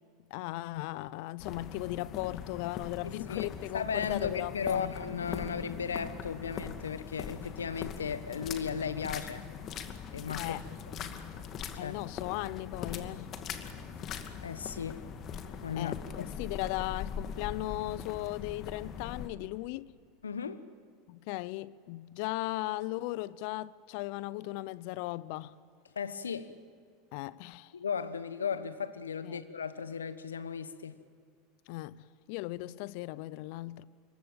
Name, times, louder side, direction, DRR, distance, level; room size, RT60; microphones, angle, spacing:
voice 1, 0.3-5.0 10.3-10.6 11.8-13.3 15.8-19.9 21.1-25.5 27.1-27.7 29.2-29.5 31.7-33.8, left 18 dB, 60° left, 0.7 m, -37 dB
sound 1, 1.4-19.3, left 7 dB, 40° left, 2.3 m, -41 dB
voice 2, 3.0-3.5 3.7-9.4 10.1-10.5 11.8-12.0 14.4-15.0 15.6-16.3 20.2-20.6 25.9-26.5 27.7-31.0, left 6 dB, 85° left, 1.3 m, -36 dB
27.0 x 23.0 x 8.9 m
hypercardioid pair, 85°, 0 cm